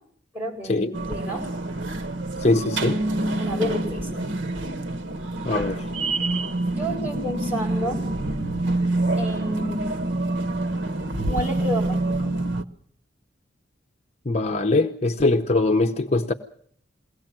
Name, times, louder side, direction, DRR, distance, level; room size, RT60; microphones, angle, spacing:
voice 1, 0.3-1.5 2.5-4.3 6.7-8.0 9.2-9.9 11.3-12.3, equal, 10° right, 8.0 m, -30 dB
sound 1, 0.9-12.6, right 2 dB, 85° right, 1.3 m, -27 dB
voice 2, 2.4-3.0 5.4-5.8 14.3-16.3, left 2 dB, 35° left, 0.9 m, -22 dB
22.0 x 18.0 x 7.5 m
head